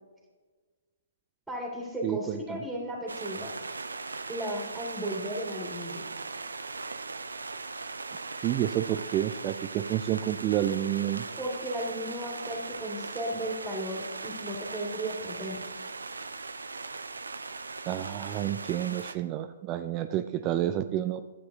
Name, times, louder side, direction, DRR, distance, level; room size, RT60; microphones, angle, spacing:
voice 1, 1.5-3.5 4.3-6.0 11.4-15.6, right 1 dB, ahead, -2 dB, 2.0 m, -35 dB
voice 2, 2.0-2.6 8.4-11.3 17.9-21.2, right 12 dB, 30° right, 9 dB, 0.4 m, -29 dB
sound 1, 3.1-19.2, right 3 dB, 85° right, 0.5 m, -39 dB
12.0 x 7.7 x 2.7 m, 1.4 s
hypercardioid pair, 130°, 0 cm